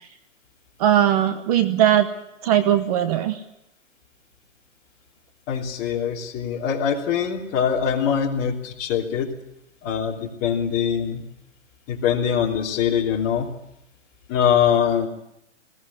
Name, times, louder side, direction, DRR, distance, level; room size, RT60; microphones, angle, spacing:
voice 1, 0.8-2.1 2.4-3.4, right 11 dB, 30° right, 10 dB, 1.0 m, -19 dB
voice 2, 5.5-9.3 9.8-11.2 11.9-13.5 14.3-15.1, left 8 dB, 30° left, 0 dB, 3.1 m, -23 dB
20.5 x 17.0 x 9.8 m, 0.83 s
hypercardioid pair, 155°, 38 cm